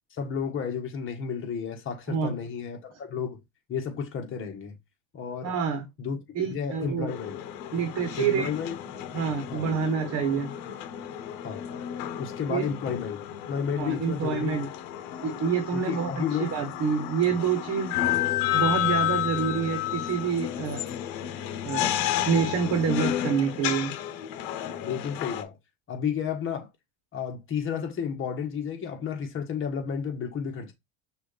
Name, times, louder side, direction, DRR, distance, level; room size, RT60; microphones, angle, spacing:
voice 1, 0.1-3.4 3.7-4.7 5.1-5.5 6.0-6.2 6.5-7.4 8.2-8.8 9.5-9.7 10.3-10.4 11.4-11.6 12.2-13.2 13.5-14.6 15.7-16.5 24.7-25.6 25.9-26.7 27.1-30.7, left 7 dB, 35° left, 1.4 m, -32 dB
voice 2, 5.4-5.8 6.3-7.1 7.7-8.5 9.1-10.5 12.5-12.7 13.7-14.7 15.2-18.0 18.5-20.8 21.6-21.9 22.3-24.0, right 6 dB, 45° right, 1.1 m, -27 dB
sound 1, 7.1-25.4, left 11 dB, 65° left, 1.0 m, -31 dB
6.0 x 2.6 x 3.3 m
cardioid pair, 135°, 36 cm